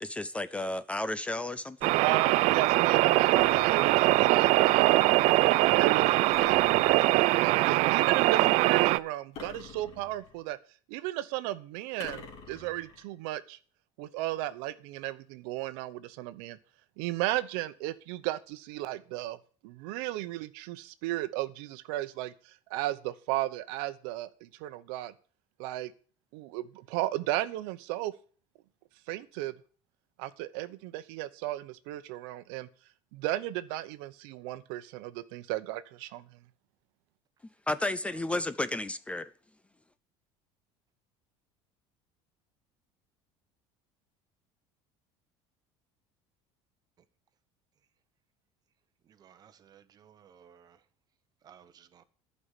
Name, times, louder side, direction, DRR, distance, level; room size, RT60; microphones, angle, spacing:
voice 1, 0.0-1.9 37.7-39.3, left 2 dB, 10° left, 0.4 m, -32 dB
sound 1, 1.8-9.0, right 18 dB, 60° right, 0.5 m, -22 dB
voice 2, 2.0-5.1 5.8-10.6 10.9-13.6 14.0-16.6 17.0-19.4 19.6-25.1 25.6-25.9 26.3-28.1 29.1-29.5 30.2-32.7 33.1-36.3, right 15 dB, 80° right, 0.9 m, -35 dB
sound 2, 3.4-4.4 6.3-7.4 9.3-10.5 12.0-13.1, left 5 dB, 50° left, 3.0 m, -47 dB
voice 3, 49.1-50.8 51.4-52.0, right 8 dB, 30° right, 1.0 m, -56 dB
11.0 x 5.5 x 8.2 m
cardioid pair, 145°, 13 cm